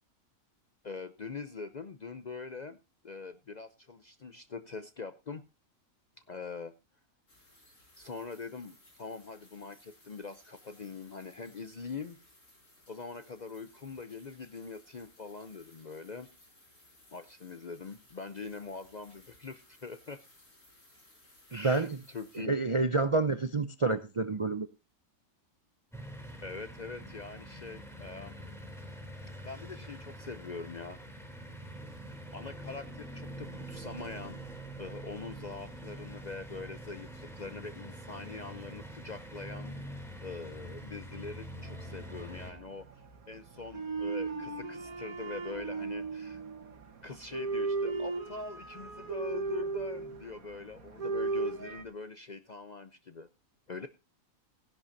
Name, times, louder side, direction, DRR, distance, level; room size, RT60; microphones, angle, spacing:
voice 1, 0.8-2.8 3.0-5.4 6.3-6.7 8.0-12.2 12.9-16.3 17.1-20.2 21.5-22.6 26.4-28.3 29.4-31.0 32.3-34.4 34.8-39.8 40.2-42.9 43.3-46.4 47.0-53.3 53.7-53.9, left 4 dB, 45° left, 11 dB, 0.6 m, -43 dB
sound 1, 7.3-22.4, left 1 dB, 65° left, 5.6 m, -61 dB
voice 2, 21.5-22.0 22.4-24.7, right 3 dB, 40° right, 10 dB, 0.4 m, -29 dB
sound 2, 25.9-42.5, right 1 dB, ahead, 3.2 m, -45 dB
sound 3, 41.4-51.8, right 3 dB, 90° right, 1.9 m, -37 dB
17.0 x 11.0 x 2.7 m, 0.26 s
omnidirectional pair, 1.4 m